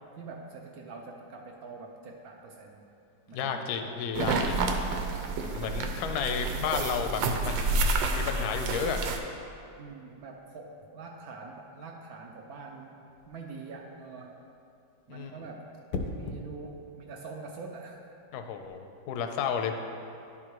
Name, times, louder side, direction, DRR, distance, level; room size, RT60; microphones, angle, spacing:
voice 1, 0.2-2.9 3.3-4.0 9.8-14.3 15.1-15.7 16.1-18.0, right 4 dB, 70° right, 1 dB, 0.9 m, -44 dB
voice 2, 3.3-4.6 5.4-7.8 8.1-9.0 15.1-15.3 18.3-19.7, left 6 dB, 70° left, 5 dB, 1.0 m, -32 dB
sound 1, 4.1-9.2, right 3 dB, 85° right, 1.4 m, -29 dB
sound 2, 13.1-13.4 15.9-16.4 18.4-18.7, left 3 dB, 85° left, 1.4 m, -36 dB
11.0 x 3.7 x 4.6 m, 2.6 s
omnidirectional pair, 2.0 m